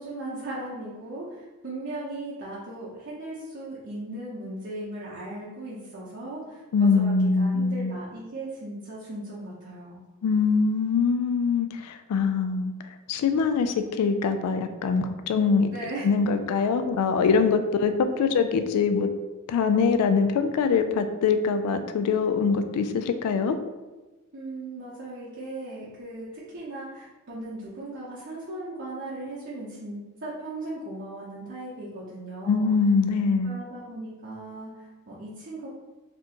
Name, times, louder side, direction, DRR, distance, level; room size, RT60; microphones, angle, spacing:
voice 1, 0.0-6.6 6.9-10.0 15.7-16.0 18.2-18.4 24.3-32.7 33.4-35.7, right 2 dB, 55° right, -8 dB, 0.7 m, -37 dB
voice 2, 6.7-7.9 10.2-12.7 13.1-15.7 16.0-19.1 19.5-23.6 32.5-33.6, left 5 dB, 90° left, 9 dB, 0.3 m, -23 dB
4.1 x 2.9 x 2.8 m, 1.2 s
head